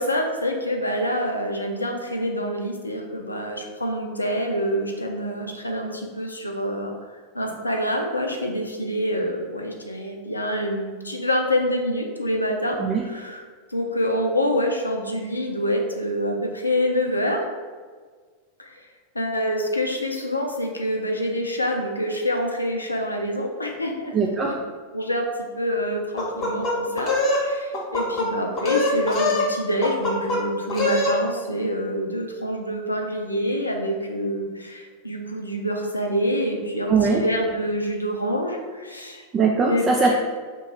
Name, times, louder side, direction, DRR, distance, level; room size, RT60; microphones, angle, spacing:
voice 1, 0.0-6.9 7.3-13.4 13.7-17.5 18.6-18.8 19.1-24.1 24.5-24.6 24.9-25.3 25.6-39.2 39.7-40.1, equal, 85° left, 2 dB, 0.5 m, -26 dB
voice 2, 24.1-24.5 36.9-37.2 39.3-40.1, right 5 dB, 25° right, -1 dB, 0.4 m, -20 dB
chicken clucking, 26.2-27.4 27.7-28.3 28.6-29.5 29.8-30.4 30.7-31.2, left 2 dB, 35° left, 1.0 m, -23 dB
2.9 x 2.3 x 4.2 m, 1.5 s
figure-of-eight pair, 90°, 0 cm